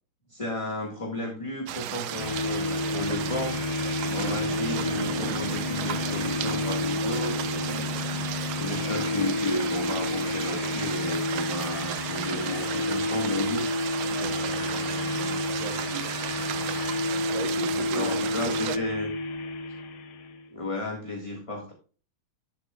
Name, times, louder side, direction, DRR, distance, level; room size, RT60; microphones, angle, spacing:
voice 1, 0.3-3.7 4.1-8.0 8.6-13.7 17.9-19.1 20.5-21.7, left 2 dB, 15° left, 1.4 m, -33 dB
sound 1, 1.7-18.8, right 12 dB, 90° right, 1.6 m, -34 dB
sound 2, 2.2-20.5, left 3 dB, 85° left, 1.9 m, -30 dB
voice 2, 4.0-4.4 14.0-16.2 17.3-18.1 18.4-18.8, right 5 dB, 70° right, 2.2 m, -39 dB
12.0 x 7.6 x 2.3 m
omnidirectional pair, 2.3 m